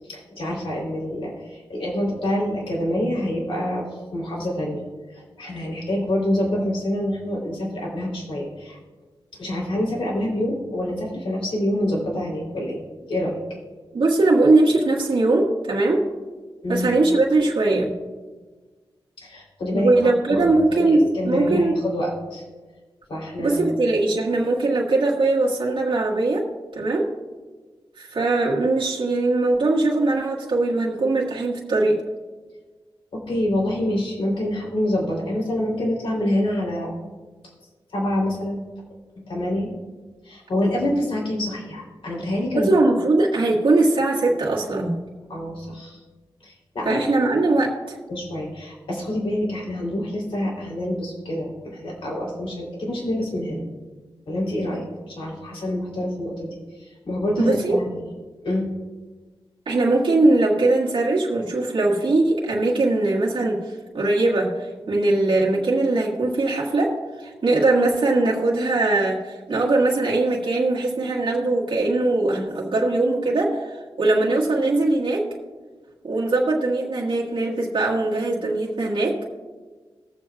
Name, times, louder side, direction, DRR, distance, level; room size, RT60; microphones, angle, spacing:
voice 1, 0.1-3.8 4.1-4.8 5.1-8.8 9.4-12.8 13.1-13.4 16.6-16.9 19.2-22.4 23.1-23.6 33.1-36.9 37.9-38.6 39.3-39.7 40.2-42.8 45.3-46.0 46.4-47.0 48.1-53.6 54.3-56.5 56.8-57.9 58.4-58.7, left 1 dB, 75° left, -3 dB, 3.4 m, -26 dB
voice 2, 13.9-16.1 16.7-17.9 19.7-21.7 23.4-26.4 26.7-27.1 28.0-32.0 42.6-45.0 46.9-48.0 57.4-57.8 59.7-63.6 63.9-66.9 67.2-75.3 76.0-79.2, right 2 dB, 65° right, -5 dB, 1.7 m, -20 dB
22.0 x 7.4 x 2.4 m, 1.4 s
wide cardioid pair, 110°, 9 cm